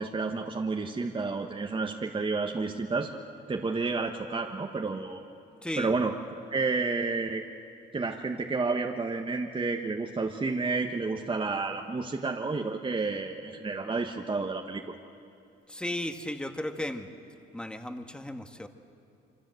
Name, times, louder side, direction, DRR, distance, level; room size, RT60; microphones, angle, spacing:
voice 1, 0.0-3.1 3.5-5.2 5.8-6.1 6.5-7.4 7.9-15.0, right 3 dB, 25° right, 2 dB, 1.4 m, -30 dB
voice 2, 5.6-6.0 15.7-17.1 17.5-18.7, left 1 dB, 5° left, 6 dB, 1.6 m, -35 dB
26.5 x 24.5 x 7.9 m, 2.7 s
cardioid pair, 90°, 20 cm